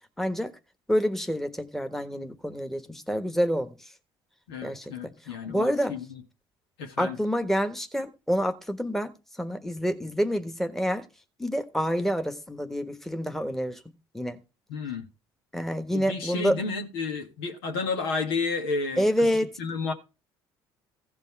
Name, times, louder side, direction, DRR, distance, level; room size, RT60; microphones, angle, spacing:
voice 1, 0.2-0.5 0.9-3.7 4.6-5.1 5.5-6.0 7.0-11.0 11.4-13.8 14.1-14.4 15.5-16.6 19.0-19.5, equal, 5° left, 1.3 m, -27 dB
voice 2, 4.5-6.2 6.8-7.2 14.7-15.1 15.9-19.3 19.6-19.9, left 4 dB, 80° left, 1.8 m, -31 dB
15.5 x 5.3 x 4.6 m
hypercardioid pair, 60°, 12 cm